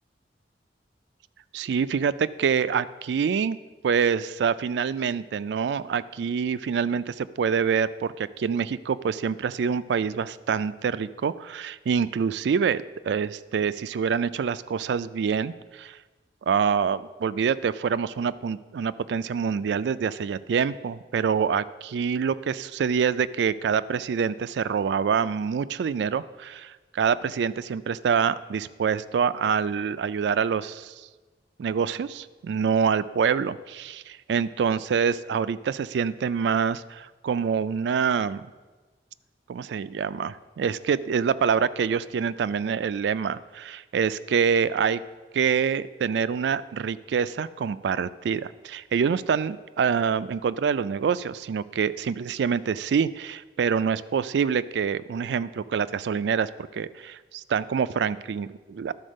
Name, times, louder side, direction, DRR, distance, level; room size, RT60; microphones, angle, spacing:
voice 1, 1.5-3.6 3.8-16.0 16.5-30.9 31.6-38.4 39.5-45.0 45.3-58.9, right 6 dB, 80° right, 16 dB, 0.3 m, -26 dB
11.5 x 4.3 x 6.3 m, 1.3 s
head